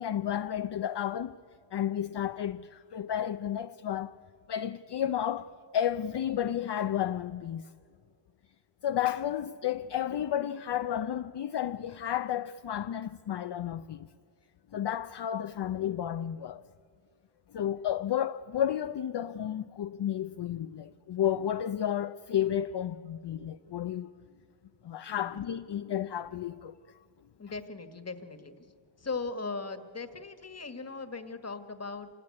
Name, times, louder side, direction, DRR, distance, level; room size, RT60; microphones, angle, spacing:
voice 1, 0.0-1.4 1.7-4.2 4.5-7.7 8.8-14.1 14.7-16.6 17.5-24.2 24.8-26.8, left 10 dB, 60° left, 0.6 m, -32 dB
voice 2, 27.4-28.5 29.0-32.1, left 4 dB, 30° left, 1.5 m, -38 dB
26.0 x 19.5 x 9.6 m
wide cardioid pair, 140°, 47 cm